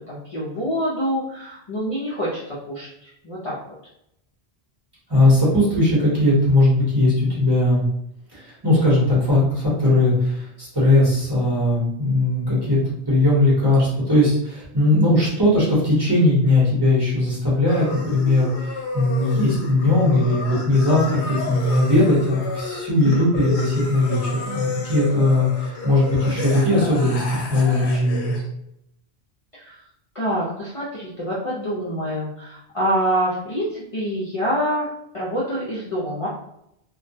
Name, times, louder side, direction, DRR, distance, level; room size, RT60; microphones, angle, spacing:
voice 1, 0.1-3.6 23.0-23.2 29.5-29.7 30.1-34.9 35.1-36.3, equal, 40° left, -8 dB, 0.5 m, -26 dB
voice 2, 5.1-7.8 8.3-12.8 13.1-18.5 18.9-24.2 24.4-28.4, left 2 dB, 25° right, -8 dB, 0.9 m, -19 dB
sound 1, 17.7-28.4, left 3 dB, 80° left, 0.8 m, -31 dB
2.2 x 2.1 x 2.6 m, 0.78 s
omnidirectional pair, 1.1 m